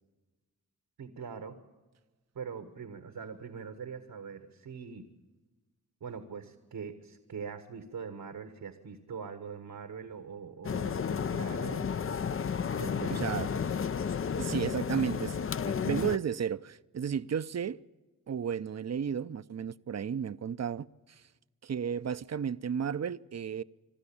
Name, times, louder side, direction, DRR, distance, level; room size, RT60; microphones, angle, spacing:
voice 1, 1.0-1.6 2.3-5.1 6.0-11.9 12.7-13.3, right 6 dB, 75° right, 1.5 m, -42 dB
sound 1, 10.6-16.2, left 7 dB, 40° left, 0.6 m, -32 dB
voice 2, 13.1-13.5 14.4-15.4 15.6-17.8 18.3-21.2 21.6-23.6, right 7 dB, 50° right, 0.7 m, -33 dB
24.0 x 13.0 x 8.6 m
supercardioid pair, 40°, 35 cm